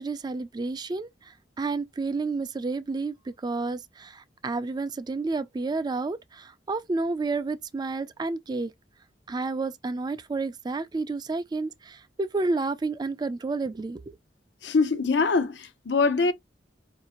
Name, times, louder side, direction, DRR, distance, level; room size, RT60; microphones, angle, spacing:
voice 1, 0.0-8.7 9.3-14.2, right 3 dB, 25° right, 0.3 m, -30 dB
voice 2, 14.6-16.3, left 4 dB, 85° left, 0.6 m, -23 dB
4.8 x 2.6 x 2.9 m
head